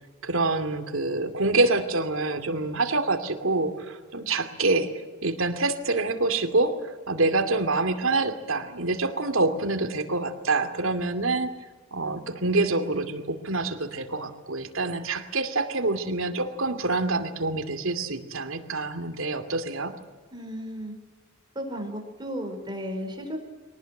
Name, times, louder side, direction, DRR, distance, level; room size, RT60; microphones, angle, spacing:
voice 1, 0.2-4.9 5.2-6.8 7.1-11.5 11.9-19.9, right 3 dB, 75° right, 7 dB, 2.6 m, -26 dB
voice 2, 20.3-20.9 21.6-23.4, equal, 20° right, 3 dB, 5.3 m, -34 dB
23.5 x 19.0 x 9.1 m, 1.3 s
head